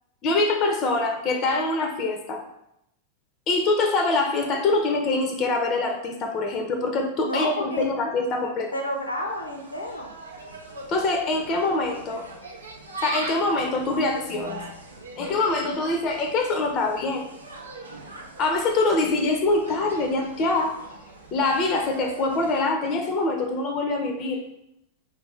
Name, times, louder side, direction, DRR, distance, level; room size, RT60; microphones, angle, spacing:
voice 1, 0.2-2.4 3.5-8.7 10.9-12.2 13.0-14.6 15.2-17.2 18.4-20.7 21.3-24.4, left 2 dB, 35° left, 4 dB, 0.5 m, -24 dB
voice 2, 7.2-7.9 8.7-10.1, equal, 80° left, 2 dB, 0.6 m, -30 dB
Insect, 8.8-22.6, right 2 dB, 80° right, 0.5 m, -40 dB
4.7 x 2.6 x 3.2 m, 0.80 s
figure-of-eight pair, 90°, 0 cm